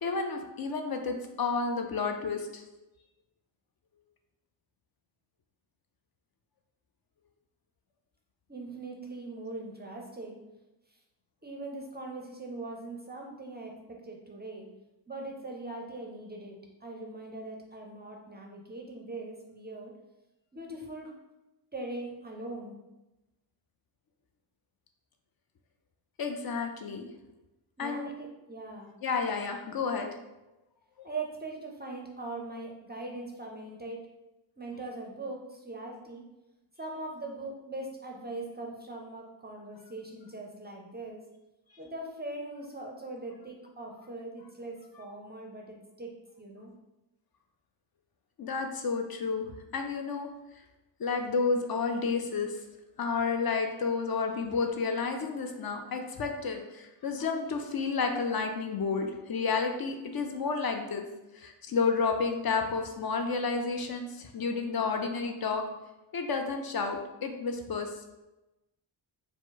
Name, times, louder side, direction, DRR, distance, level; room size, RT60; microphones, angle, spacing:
voice 1, 0.0-2.6 26.2-27.1 27.8-28.1 29.0-30.1 31.0-31.1 48.4-49.5 49.7-50.3 51.0-52.6 53.0-61.1 61.3-65.6 66.1-67.9, left 4 dB, 50° left, 4 dB, 0.5 m, -31 dB
voice 2, 8.5-10.4 11.4-14.7 15.1-19.9 20.5-21.2 21.7-22.8 27.8-28.9 31.0-34.1 34.6-36.2 36.8-41.2 41.8-46.7, right 2 dB, 20° right, 0 dB, 0.4 m, -41 dB
4.8 x 2.0 x 3.8 m, 1.0 s
wide cardioid pair, 145°, 47 cm